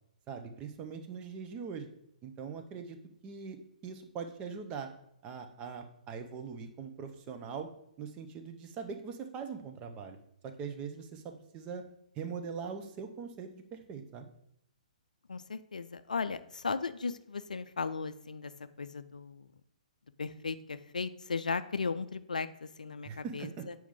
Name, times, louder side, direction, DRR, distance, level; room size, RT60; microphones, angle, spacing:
voice 1, 0.3-1.9 2.2-3.0 3.2-3.6 3.8-4.9 5.2-7.7 8.0-10.2 10.4-11.8 12.2-14.3 23.0-23.7, right 6 dB, 25° right, 5 dB, 0.6 m, -41 dB
voice 2, 15.3-18.5 18.8-19.4 20.2-23.8, left 4 dB, 70° left, 13 dB, 0.4 m, -36 dB
7.2 x 4.6 x 3.6 m, 0.74 s
figure-of-eight pair, 120°, 4 cm